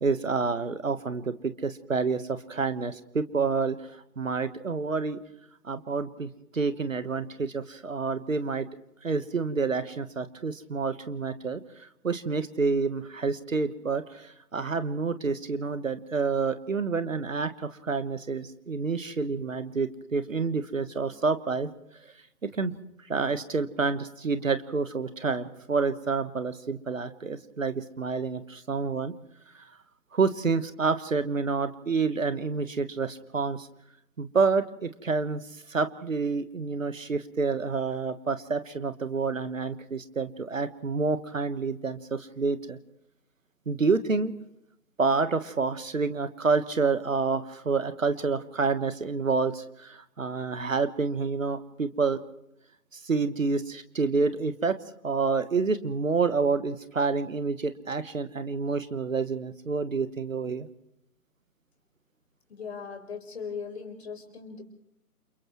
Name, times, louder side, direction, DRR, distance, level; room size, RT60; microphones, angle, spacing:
voice 1, 0.0-5.2 5.6-8.7 9.0-21.7 22.0-22.1 22.4-22.8 23.1-29.1 29.5-29.7 30.1-33.7 34.2-42.8 43.7-44.3 45.0-52.2 52.9-54.8 55.0-60.7, right 4 dB, 55° right, 12 dB, 1.4 m, -28 dB
voice 2, 62.5-64.6, left 5 dB, 40° left, 4 dB, 4.6 m, -38 dB
29.5 x 28.5 x 3.1 m, 0.81 s
figure-of-eight pair, 150°, 47 cm